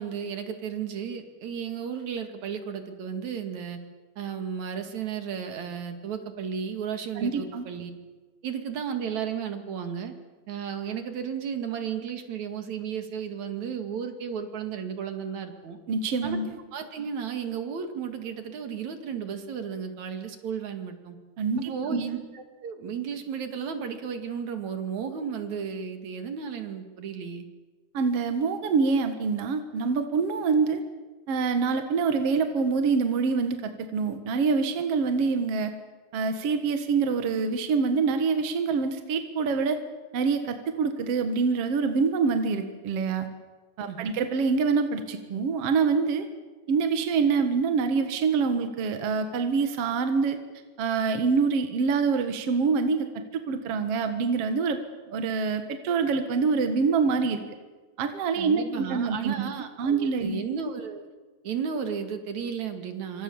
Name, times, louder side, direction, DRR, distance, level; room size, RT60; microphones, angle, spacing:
voice 1, 0.0-3.8 4.2-7.9 8.4-10.1 10.5-15.8 16.2-16.4 16.7-21.2 21.6-27.5 43.9-44.1 58.4-61.1 61.4-63.2, right 7 dB, 75° right, 7 dB, 3.5 m, -34 dB
voice 2, 7.2-7.7 15.9-16.6 21.4-22.2 27.9-30.8 31.3-35.7 36.1-39.8 40.1-43.3 43.8-46.3 46.7-50.4 50.8-54.8 55.1-57.4 58.0-59.5 59.8-60.4, right 5 dB, 60° right, 7 dB, 2.5 m, -25 dB
27.0 x 26.0 x 7.1 m, 1.3 s
omnidirectional pair, 3.3 m